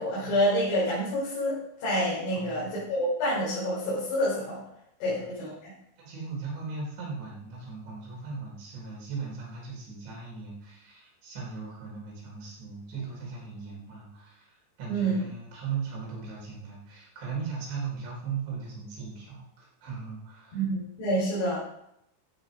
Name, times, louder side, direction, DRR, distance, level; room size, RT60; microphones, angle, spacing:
voice 1, 0.0-4.6 5.0-5.7 14.9-15.2 20.5-21.6, equal, 65° left, -9 dB, 6.7 m, -28 dB
voice 2, 2.3-2.8 5.1-5.2 6.0-20.6, right 5 dB, 75° right, -4 dB, 6.7 m, -38 dB
14.5 x 8.3 x 5.2 m, 0.78 s
omnidirectional pair, 5.1 m